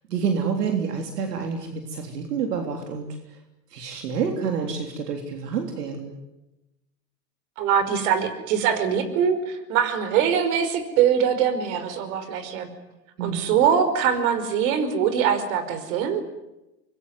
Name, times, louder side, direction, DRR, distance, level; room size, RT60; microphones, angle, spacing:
voice 1, 0.1-3.4 3.7-6.2 13.2-13.5, right 6 dB, 80° right, 4 dB, 3.7 m, -28 dB
voice 2, 7.6-12.7 13.2-16.2, right 8 dB, 60° right, 11 dB, 5.2 m, -23 dB
25.5 x 21.5 x 9.6 m, 0.96 s
hypercardioid pair, 105°, 47 cm